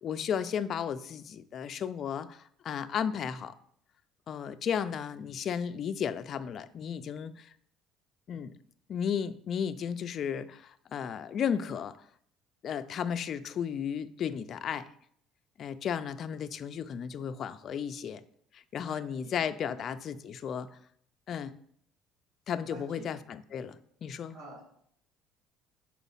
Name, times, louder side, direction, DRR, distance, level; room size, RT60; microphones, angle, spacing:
voice 1, 0.0-3.5 4.3-7.5 8.3-8.5 8.9-12.0 12.6-14.9 15.6-18.2 18.5-20.8 21.3-21.5 22.5-24.3, left 7 dB, 40° left, 11 dB, 0.3 m, -34 dB
voice 2, 18.8-19.3 19.6-19.8 22.7-23.1 24.3-24.6, right 1 dB, 75° right, -10 dB, 2.7 m, -48 dB
4.4 x 4.0 x 5.5 m, 0.65 s
cardioid pair, 145°, 0 cm